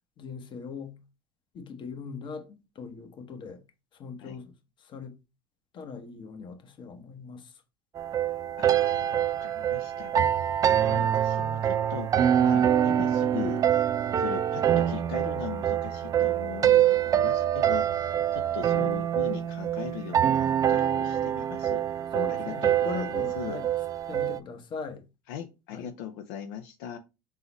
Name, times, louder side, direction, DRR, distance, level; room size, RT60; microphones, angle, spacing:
voice 1, 0.2-1.0 1.5-3.6 3.9-4.5 4.8-5.1 5.7-7.6 10.9-11.1 18.7-18.9 22.1-23.7 24.1-25.0 25.7-25.9, left 5 dB, 40° left, 1.0 m, -40 dB
sound 1, 8.0-24.4, right 10 dB, 30° right, 0.3 m, -25 dB
voice 2, 8.6-10.3 10.7-13.9 14.2-21.8 22.3-23.6 25.3-27.0, left 9 dB, 75° left, 0.6 m, -40 dB
4.0 x 3.8 x 3.0 m
supercardioid pair, 100°, 12 cm